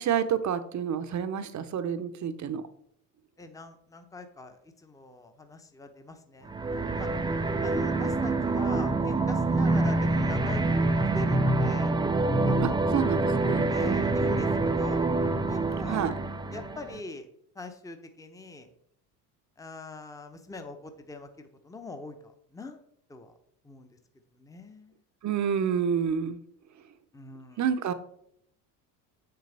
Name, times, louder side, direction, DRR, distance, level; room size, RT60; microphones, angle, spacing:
voice 1, 0.0-2.6 12.6-14.1 15.9-16.1 25.2-26.4 27.6-27.9, right 8 dB, 35° right, 10 dB, 0.9 m, -29 dB
voice 2, 3.4-7.1 7.6-11.9 12.4-13.0 13.7-15.1 15.4-16.1 16.5-17.3 17.5-18.7 19.6-22.8 23.1-23.3 23.6-24.0 24.3-25.0 27.1-27.6, left 2 dB, 5° left, 7 dB, 0.9 m, -43 dB
sound 1, 6.5-17.0, right 2 dB, 10° right, 0.5 m, -26 dB
7.5 x 6.8 x 3.4 m, 0.70 s
hypercardioid pair, 75°, 48 cm